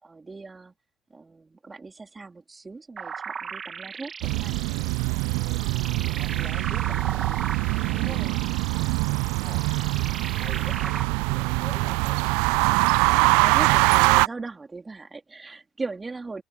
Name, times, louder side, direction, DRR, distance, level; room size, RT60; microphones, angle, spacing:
voice 1, 0.0-0.7 1.1-4.6 7.9-8.3 13.2-16.4, right 3 dB, 25° right, 3.6 m, -38 dB
sound 1, 3.0-11.0, right 6 dB, 40° right, 2.8 m, -37 dB
sound 2, 4.2-14.3, right 30 dB, 70° right, 0.4 m, -23 dB
voice 2, 6.2-7.0 9.4-9.7 10.4-10.9 11.3-12.2 13.0-13.2, left 4 dB, 25° left, 2.3 m, -44 dB
open air
hypercardioid pair, 55°, 0 cm